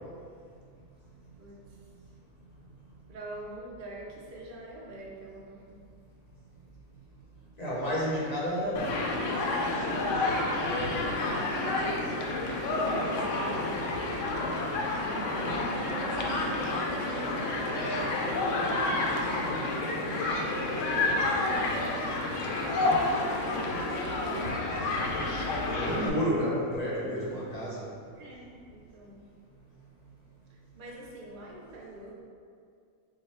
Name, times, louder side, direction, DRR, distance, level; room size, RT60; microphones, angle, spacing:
voice 1, 3.1-5.8 10.5-14.4 15.5-17.8 18.1-19.0 19.3-20.3 20.7-24.7 25.6-26.3 28.2-29.2 30.7-32.1, right 1 dB, 45° right, -4 dB, 0.7 m, -45 dB
voice 2, 7.6-9.2 17.3-17.5 17.8-18.0 19.6-20.1 25.8-27.8, equal, 35° left, -7 dB, 0.7 m, -31 dB
Human group actions, 8.8-26.1, left 2 dB, 65° left, 0.8 m, -29 dB
4.7 x 2.2 x 4.2 m, 2.2 s
omnidirectional pair, 1.5 m